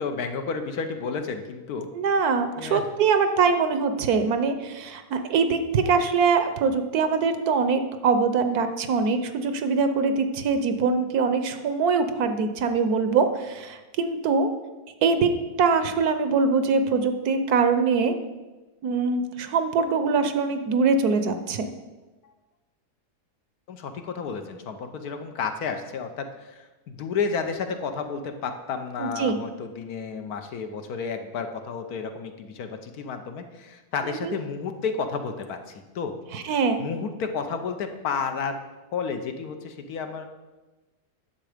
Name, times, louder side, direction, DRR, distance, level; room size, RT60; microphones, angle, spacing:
voice 1, 0.0-1.9 2.5-2.8 22.2-22.3 23.7-36.2 36.8-38.6 38.9-40.3, left 5 dB, 70° left, 7 dB, 1.3 m, -31 dB
voice 2, 1.9-14.5 15.0-15.3 15.6-18.2 18.8-21.7 29.0-29.4 34.1-34.3 36.3-36.8, right 5 dB, 70° right, 9 dB, 1.3 m, -23 dB
10.5 x 7.2 x 5.0 m, 1.2 s
omnidirectional pair, 1.7 m